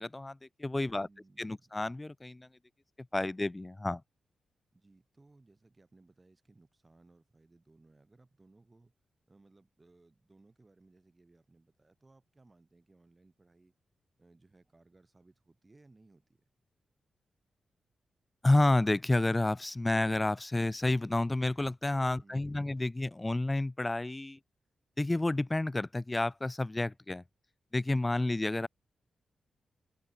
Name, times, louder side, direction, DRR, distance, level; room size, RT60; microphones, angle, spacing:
voice 1, 0.0-1.1 1.4-2.5 3.1-4.0 18.4-24.4 25.0-27.2 27.7-28.7, left 2 dB, 15° left, 0.4 m, -30 dB
voice 2, 0.9-1.8 4.7-8.9 9.3-13.7 14.2-16.4 22.2-22.8, right 2 dB, 20° right, 3.8 m, -63 dB
wide cardioid pair, 135°, 0 cm